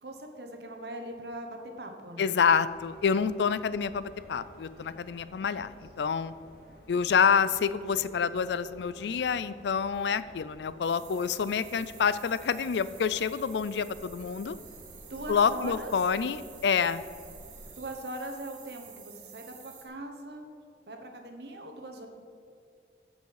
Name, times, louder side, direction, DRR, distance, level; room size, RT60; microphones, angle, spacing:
voice 1, 0.0-2.4 15.1-15.9 17.8-20.5 20.9-22.1, right 1 dB, 75° right, 4 dB, 1.2 m, -40 dB
voice 2, 2.2-6.3 6.9-14.6 15.3-17.0, left 6 dB, 80° left, 15 dB, 0.4 m, -27 dB
sound 1, 2.6-17.8, equal, 55° left, 1.8 m, -53 dB
sound 2, 10.8-19.9, right 8 dB, 45° right, 1.2 m, -51 dB
14.5 x 5.5 x 4.8 m, 2.3 s
head